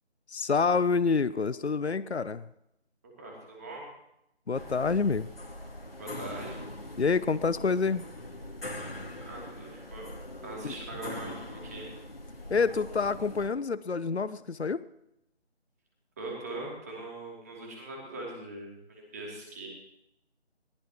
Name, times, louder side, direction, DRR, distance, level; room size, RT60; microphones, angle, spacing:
voice 1, 0.3-2.5 4.5-5.3 7.0-8.0 10.6-10.7 12.5-14.8, left 4 dB, 75° left, 17 dB, 0.7 m, -27 dB
voice 2, 3.2-3.9 6.0-6.6 9.2-10.1 10.4-11.9 16.2-19.7, right 2 dB, 15° right, -2 dB, 2.9 m, -41 dB
sound 1, 4.5-13.5, left 1 dB, 55° left, 2.8 m, -42 dB
21.0 x 19.0 x 3.1 m, 0.81 s
figure-of-eight pair, 160°, 34 cm